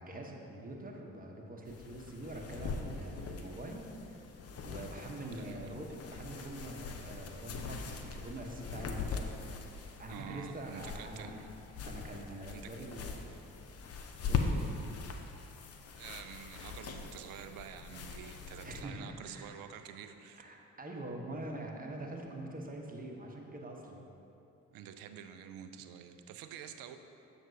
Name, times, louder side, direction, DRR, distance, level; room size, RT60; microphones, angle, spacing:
voice 1, 0.0-3.8 4.1-9.5 10.0-11.4 11.8-13.4 14.3-14.6 18.6-19.5 20.4-24.1, right 1 dB, 20° right, 1 dB, 0.9 m, -44 dB
sound 1, 1.7-18.8, left 4 dB, 35° left, 0.6 m, -41 dB
voice 2, 5.3-5.7 10.1-11.5 12.5-12.9 16.0-20.5 24.7-27.0, right 8 dB, 55° right, 9 dB, 0.5 m, -48 dB
7.5 x 6.1 x 2.7 m, 2.9 s
figure-of-eight pair, 40°, 41 cm